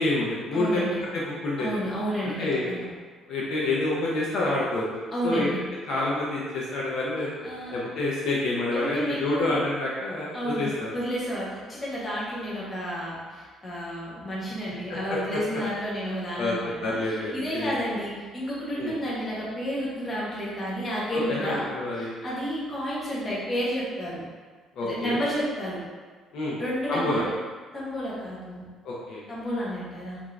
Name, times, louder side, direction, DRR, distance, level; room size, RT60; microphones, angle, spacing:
voice 1, 0.0-0.8 1.1-1.7 2.4-2.7 3.3-4.8 5.2-5.5 5.9-7.3 7.7-10.9 14.9-15.4 16.4-16.5 16.8-17.7 18.8-18.9 21.1-22.1 24.8-25.2 26.3-26.6 26.9-27.2 28.8-29.2, left 2 dB, 55° left, -5 dB, 0.6 m, -28 dB
voice 2, 0.5-1.0 1.6-2.9 5.1-5.6 7.4-7.8 8.7-9.6 10.3-21.7 21.9-24.2 24.8-25.8 26.6-27.3 27.7-28.6 29.3-30.2, equal, 20° left, -7 dB, 0.9 m, -31 dB
3.5 x 2.5 x 3.2 m, 1.4 s
cardioid pair, 165°, 0 cm